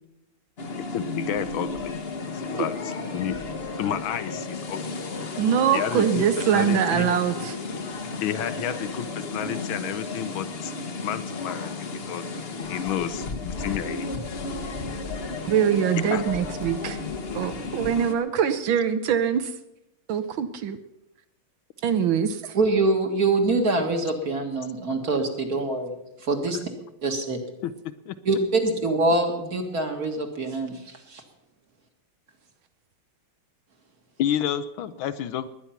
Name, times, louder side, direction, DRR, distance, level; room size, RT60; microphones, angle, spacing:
sound 1, 0.6-18.2, left 3 dB, 35° left, 1.0 m, -33 dB
voice 1, 0.9-1.9 2.6-2.7 3.1-3.4 3.8-4.8 5.7-6.3 6.5-7.1 8.2-10.7 11.0-12.3 12.7-14.1 16.1-16.2 27.6-27.7 28.1-28.2 34.2-35.5, left 10 dB, 75° left, 13 dB, 1.5 m, -30 dB
voice 2, 5.4-7.6 15.4-17.0 17.3-19.5 20.1-20.8 21.8-22.6, right 8 dB, 70° right, 10 dB, 1.5 m, -23 dB
voice 3, 22.5-25.9 26.2-26.6 27.0-27.4 28.3-31.2, right 2 dB, 45° right, 4 dB, 2.2 m, -24 dB
20.5 x 9.7 x 5.8 m, 0.88 s
omnidirectional pair, 2.3 m